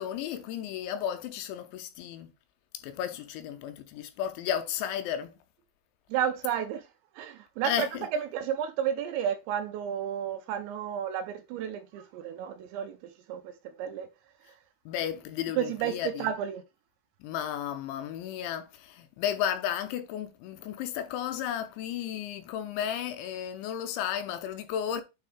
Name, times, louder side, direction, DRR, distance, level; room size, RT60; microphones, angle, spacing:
voice 1, 0.0-2.3 2.8-5.3 7.6-8.1 14.9-16.3 17.2-25.0, left 10 dB, 80° left, 3.0 m, -33 dB
voice 2, 6.1-6.8 7.2-7.9 8.1-13.0 13.3-13.5 13.8-14.1 15.6-16.6, right 9 dB, 80° right, 2.8 m, -31 dB
9.0 x 3.8 x 3.6 m
omnidirectional pair, 5.6 m